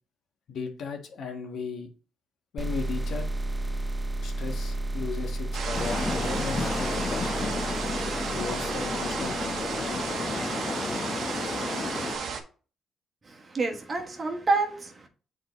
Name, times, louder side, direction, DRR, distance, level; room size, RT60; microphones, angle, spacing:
voice 1, 0.5-1.9 2.5-3.3 4.2-7.5 8.3-10.0, left 5 dB, 65° left, 1.4 m, -36 dB
sound 1, 2.6-10.1, right 1 dB, 15° right, 0.7 m, -33 dB
sound 2, 5.5-12.4, right 5 dB, 65° right, 1.0 m, -33 dB
sound 3, 5.7-12.2, left 3 dB, 40° left, 0.9 m, -32 dB
voice 2, 13.2-15.1, right 3 dB, 35° right, 1.3 m, -28 dB
8.0 x 3.8 x 3.1 m
cardioid pair, 90°, 0 cm